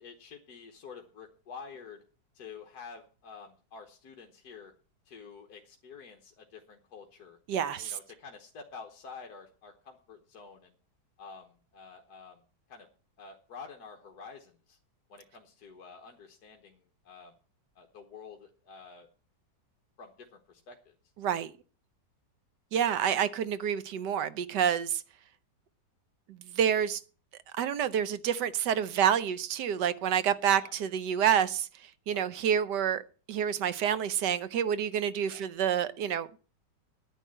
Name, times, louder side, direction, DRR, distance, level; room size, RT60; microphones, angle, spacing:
voice 1, 0.0-2.0 2.3-4.7 5.1-7.4 7.8-10.7 11.2-12.4 12.7-12.9 13.2-14.8 15.1-17.3 17.7-19.1 20.0-20.9 30.6-30.7 32.1-32.3 35.3-35.4, left 5 dB, 60° left, 1.7 m, -49 dB
voice 2, 7.5-7.9 21.2-21.5 22.7-25.0 26.6-27.0 27.6-31.7 32.1-33.0 33.3-36.3, right 9 dB, 75° right, 1.3 m, -28 dB
10.0 x 9.3 x 7.7 m
omnidirectional pair, 1.9 m